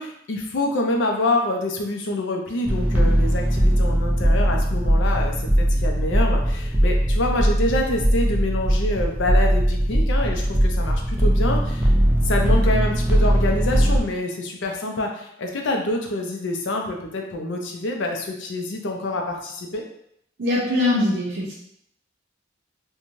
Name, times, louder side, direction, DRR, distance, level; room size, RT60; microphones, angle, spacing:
voice 1, 0.0-11.9 12.2-19.8, left 1 dB, 80° left, 2 dB, 0.5 m, -26 dB
sound 1, 2.7-14.0, equal, 10° right, 0.3 m, -20 dB
voice 2, 20.4-21.5, left 2 dB, 65° right, -7 dB, 0.6 m, -22 dB
3.0 x 2.2 x 2.6 m, 0.73 s
head